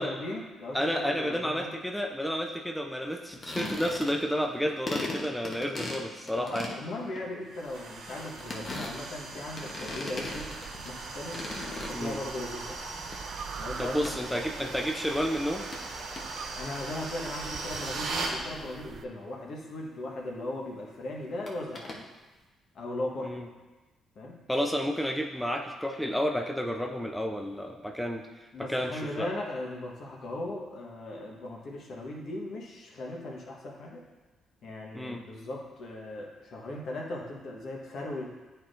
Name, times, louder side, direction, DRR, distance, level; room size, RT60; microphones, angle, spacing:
voice 1, 0.0-1.8 6.4-10.5 10.8-11.4 11.8-12.8 13.6-14.0 14.3-14.4 16.6-22.0 22.7-23.4 24.2-24.4 28.5-34.0 34.6-38.3, left 1 dB, 65° left, -1 dB, 1.2 m, -38 dB
voice 2, 0.7-6.7 11.9-12.2 13.8-15.7 23.2-23.4 24.5-28.2 28.6-29.3 34.9-35.2, equal, 5° left, 2 dB, 0.5 m, -31 dB
sound 1, 3.3-4.4 4.7-11.0 11.3-12.4 12.7-13.2 14.0-14.1 15.4-15.5 15.7-15.8 16.2-16.3 21.5-22.0, left 2 dB, 40° left, 1.0 m, -38 dB
sound 2, 7.5-18.4, right 3 dB, 75° right, 1.0 m, -39 dB
sound 3, 10.2-19.1, right 6 dB, 60° right, 0.3 m, -45 dB
9.3 x 4.4 x 2.6 m, 1.2 s
cardioid pair, 90°, 0 cm